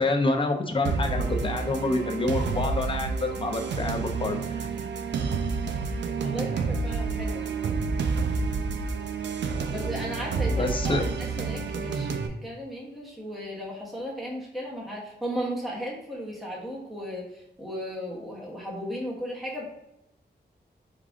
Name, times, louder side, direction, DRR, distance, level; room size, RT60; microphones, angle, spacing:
voice 1, 0.0-4.7 10.5-11.1, left 2 dB, 30° left, 4 dB, 0.6 m, -27 dB
sound 1, 0.9-12.3, right 4 dB, 90° right, 0.5 m, -29 dB
voice 2, 6.2-7.4 9.7-19.6, equal, ahead, -4 dB, 0.9 m, -35 dB
4.6 x 3.7 x 2.4 m, 0.85 s
wide cardioid pair, 130°, 18 cm